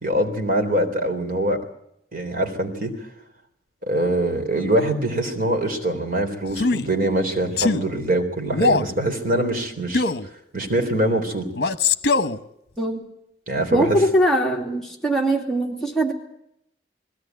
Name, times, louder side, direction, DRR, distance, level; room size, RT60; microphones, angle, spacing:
voice 1, 0.0-1.6 2.1-2.9 3.8-10.1 10.5-11.5 13.5-14.0, right 1 dB, 50° right, 4 dB, 3.6 m, -23 dB
Male speech man speaking, 6.5-6.9 7.6-7.9 8.5-8.9 9.9-10.3 11.6-12.4, left 3 dB, 60° left, 1.0 m, -21 dB
voice 2, 13.7-16.1, right 1 dB, ahead, -1 dB, 2.4 m, -21 dB
21.0 x 16.5 x 9.3 m, 0.76 s
head